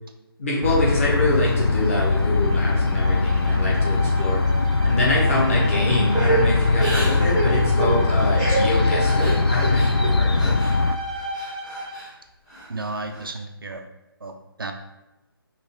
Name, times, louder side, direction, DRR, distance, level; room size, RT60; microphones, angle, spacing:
voice 1, 0.4-4.4 4.8-10.5, left 2 dB, 30° left, -4 dB, 1.2 m, -25 dB
sound 1, 0.6-11.0, left 3 dB, 75° left, 0.4 m, -21 dB
Bowed string instrument, 1.6-12.0, left 1 dB, 15° right, 0.4 m, -34 dB
Crying sobbing / Breathing, 6.1-10.7 11.1-12.1 12.5-13.2, right 3 dB, 5° left, 0.8 m, -28 dB
voice 2, 12.7-13.8 14.2-14.7, right 2 dB, 65° right, 4 dB, 0.5 m, -33 dB
5.6 x 2.7 x 3.5 m, 0.97 s
figure-of-eight pair, 150°, 13 cm